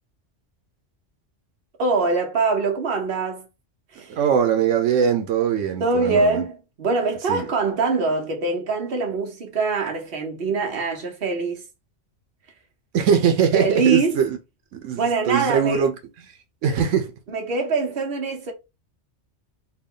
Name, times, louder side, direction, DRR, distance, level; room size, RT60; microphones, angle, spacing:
voice 1, 1.8-3.5 3.9-4.2 5.8-11.6 13.5-14.2 15.0-15.8 17.3-18.5, right 4 dB, 55° right, 1.2 m, -23 dB
voice 2, 4.1-6.4 7.3-7.5 12.9-14.4 14.7-15.9 16.6-17.1, right 7 dB, 90° right, 1.0 m, -21 dB
3.4 x 2.3 x 3.7 m
omnidirectional pair, 1.2 m